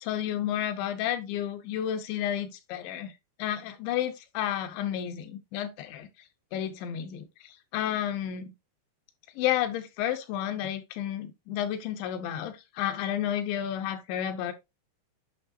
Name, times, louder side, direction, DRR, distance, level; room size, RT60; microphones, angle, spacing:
voice 1, 0.0-3.1 3.4-6.1 6.5-8.5 9.4-14.5, left 11 dB, 85° left, 3.3 m, -31 dB
8.6 x 5.9 x 2.8 m
omnidirectional pair, 5.1 m